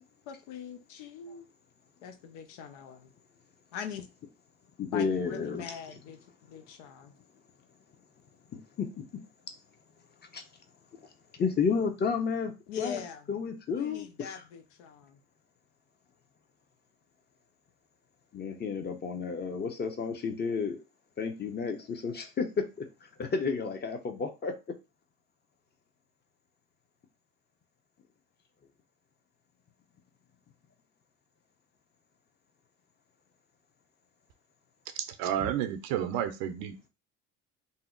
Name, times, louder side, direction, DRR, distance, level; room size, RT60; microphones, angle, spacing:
voice 1, 0.0-1.5 2.0-3.1 3.7-4.1 4.9-7.2 12.7-13.3 13.7-15.2, left 7 dB, 85° left, 0.6 m, -42 dB
voice 2, 4.8-5.6 8.5-8.9 10.3-10.4 11.3-12.5 12.8-13.0 13.3-14.3 18.3-20.8 21.2-22.9 23.2-24.5, left 5 dB, 30° left, 0.7 m, -31 dB
voice 3, 35.0-36.7, right 10 dB, 75° right, 0.6 m, -31 dB
2.7 x 2.0 x 3.7 m
supercardioid pair, 85°, 34 cm